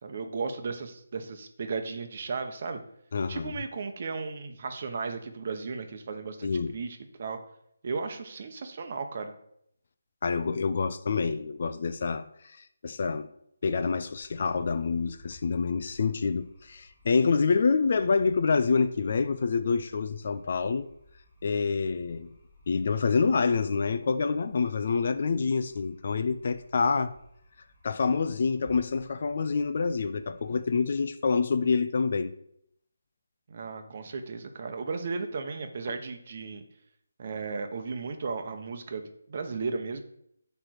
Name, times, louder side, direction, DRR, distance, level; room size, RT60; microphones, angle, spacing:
voice 1, 0.0-2.8 3.3-7.4 7.8-9.3 33.5-36.6 37.2-40.0, right 4 dB, 40° right, 1.0 m, -35 dB
voice 2, 3.1-3.5 6.4-6.8 10.2-12.2 12.8-13.3 13.6-20.9 21.4-22.3 22.7-27.1 27.8-32.3, left 5 dB, 45° left, 0.5 m, -27 dB
sound 1, 14.1-31.1, left 1 dB, 15° left, 1.9 m, -58 dB
10.0 x 3.4 x 6.4 m
hypercardioid pair, 170°, 0 cm